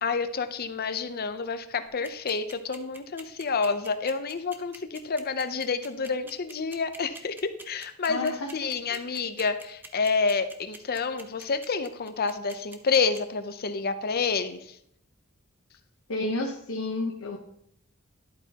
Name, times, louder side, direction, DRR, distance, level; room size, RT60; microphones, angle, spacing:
voice 1, 0.0-14.7, left 4 dB, 45° left, 10 dB, 0.7 m, -29 dB
sound 1, 1.9-13.2, right 2 dB, 10° right, 0.7 m, -44 dB
voice 2, 8.1-8.5 8.9-9.0 16.1-17.4, left 2 dB, 80° left, 1 dB, 1.0 m, -31 dB
11.5 x 8.1 x 2.9 m, 0.73 s
head